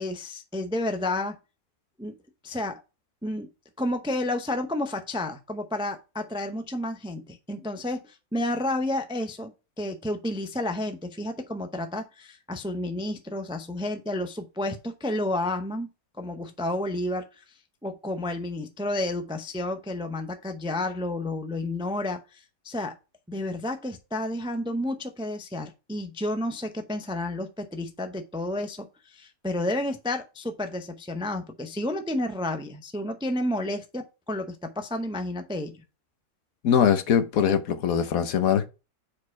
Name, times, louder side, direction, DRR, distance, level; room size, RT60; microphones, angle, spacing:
voice 1, 0.0-1.4 2.0-2.1 2.4-2.8 3.2-3.5 3.8-15.9 16.2-17.4 17.8-22.9 23.3-35.8, left 1 dB, 5° right, 0.4 m, -31 dB
voice 2, 36.6-38.6, left 8 dB, 75° left, 1.2 m, -22 dB
4.9 x 4.3 x 5.7 m
omnidirectional pair, 1.5 m